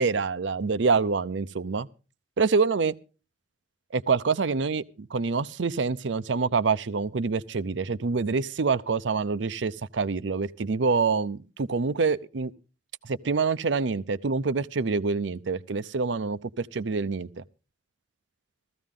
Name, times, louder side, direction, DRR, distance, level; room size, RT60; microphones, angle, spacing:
voice 1, 0.0-1.9 2.4-2.9 3.9-12.5 13.0-17.4, right 4 dB, 85° right, 0.6 m, -26 dB
16.0 x 14.0 x 3.7 m
head